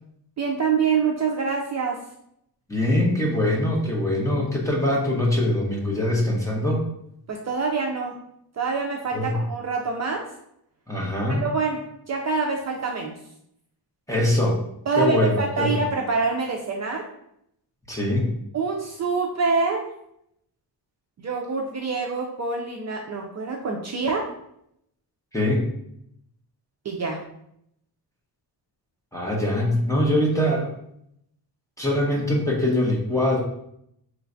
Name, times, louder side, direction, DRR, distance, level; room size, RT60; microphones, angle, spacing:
voice 1, 0.4-2.0 7.3-8.2 8.6-10.2 11.4-11.8 12.1-13.1 14.9-17.0 18.5-19.9 21.2-24.3 26.8-27.2, right 4 dB, 40° right, 1 dB, 0.5 m, -25 dB
voice 2, 2.7-6.8 9.1-9.4 10.9-11.4 14.1-14.6 15.0-15.8 17.9-18.3 25.3-25.7 29.1-30.7 31.8-33.4, left 1 dB, 10° left, -3 dB, 0.7 m, -23 dB
4.5 x 3.1 x 2.5 m, 0.74 s
wide cardioid pair, 155°, 41 cm